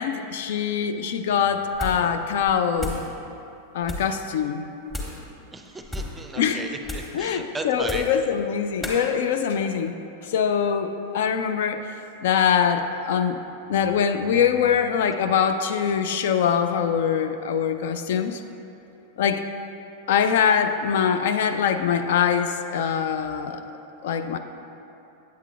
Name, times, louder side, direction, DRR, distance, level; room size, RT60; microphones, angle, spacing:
voice 1, 0.0-3.0 3.7-4.7 6.4-6.6 7.1-10.0 10.2-11.8 12.2-13.4 13.7-18.4 19.2-19.4 20.1-23.6 24.0-24.4, left 7 dB, 55° left, 8 dB, 0.3 m, -23 dB
sound 1, 1.7-2.1 2.4-3.1 3.8-4.2 4.9-5.2 5.8-6.2 6.8-7.2 7.8-8.2 8.8-9.0, left 1 dB, 10° left, 1.4 m, -33 dB
voice 2, 5.5-8.3, right 2 dB, 10° right, 5 dB, 0.5 m, -36 dB
9.2 x 8.0 x 2.4 m, 2.9 s
figure-of-eight pair, 90°, 0 cm